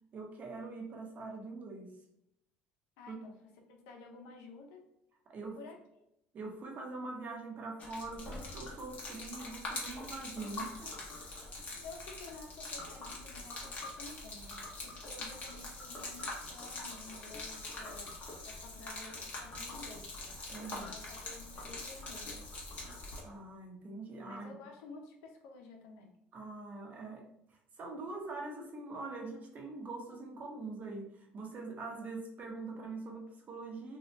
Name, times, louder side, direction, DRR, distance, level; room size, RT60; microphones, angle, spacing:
voice 1, 0.1-1.9 3.1-3.2 5.3-5.6 6.3-10.9 20.5-20.9 23.2-24.5 26.3-27.2 27.8-34.0, right 3 dB, 40° right, 1 dB, 0.8 m, -43 dB
voice 2, 3.0-3.3 3.7-4.8 5.6-6.0 11.8-18.2 18.4-20.1 20.8-22.5 24.2-26.2, left 3 dB, 90° left, 2 dB, 0.7 m, -52 dB
Gurgling / Liquid, 7.8-23.2, left 2 dB, 40° left, 0.9 m, -44 dB
2.8 x 2.3 x 3.2 m, 0.79 s
cardioid pair, 110°, 4 cm